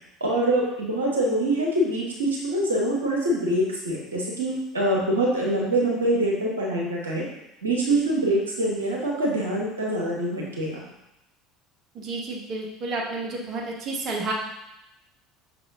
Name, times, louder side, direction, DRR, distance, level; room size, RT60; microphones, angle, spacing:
voice 1, 0.2-7.2 7.6-10.8, right 1 dB, 75° right, -3 dB, 1.1 m, -24 dB
voice 2, 11.9-14.3, right 3 dB, 40° right, -2 dB, 1.0 m, -31 dB
6.0 x 3.3 x 2.7 m, 0.87 s
figure-of-eight pair, 65°, 0 cm